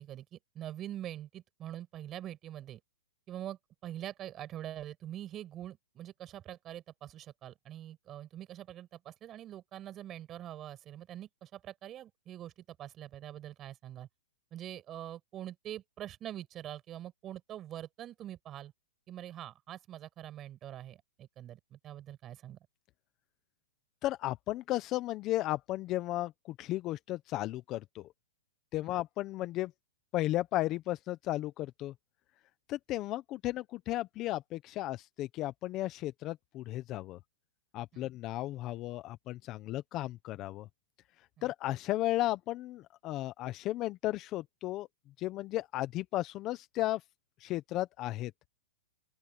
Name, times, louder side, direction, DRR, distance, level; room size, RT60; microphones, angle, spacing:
voice 1, 0.0-2.8 3.3-14.1 14.5-18.7 19.1-22.6 37.9-38.1 41.4-41.5, right 12 dB, 25° right, 7.1 m, -44 dB
voice 2, 24.0-28.1 28.7-29.7 30.1-31.9 32.7-37.2 37.7-40.7 41.4-44.9 45.2-47.0 47.4-48.3, left 16 dB, 30° left, 1.0 m, -34 dB
open air
hypercardioid pair, 140°, 0 cm